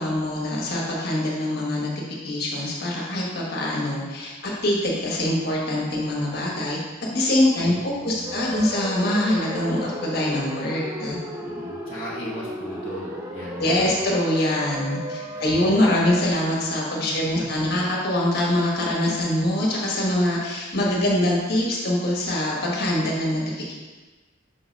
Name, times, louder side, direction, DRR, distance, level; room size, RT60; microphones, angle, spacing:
voice 1, 0.0-1.9 2.2-6.8 7.1-11.2 13.6-23.4 23.7-23.8, left 1 dB, 50° left, -4 dB, 1.3 m, -24 dB
voice 2, 7.6-8.6 11.4-14.0 15.3-15.8 17.0-17.6, equal, 25° left, -8 dB, 1.1 m, -38 dB
sound 1, 8.2-16.3, equal, 15° right, 0.6 m, -35 dB
6.0 x 3.9 x 5.1 m, 1.3 s
head